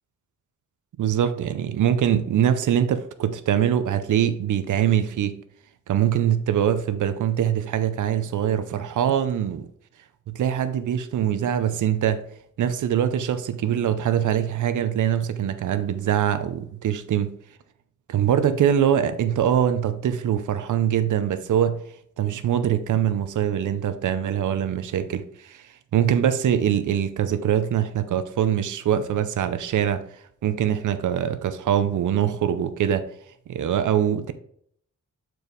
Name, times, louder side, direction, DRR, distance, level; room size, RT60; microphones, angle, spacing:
voice 1, 1.0-5.4 5.9-9.7 10.3-12.2 12.6-17.3 18.1-21.8 22.2-30.0 30.4-33.1 33.5-34.3, right 9 dB, 75° right, 0.6 m, -23 dB
7.0 x 4.6 x 3.9 m
wide cardioid pair, 110°, 30 cm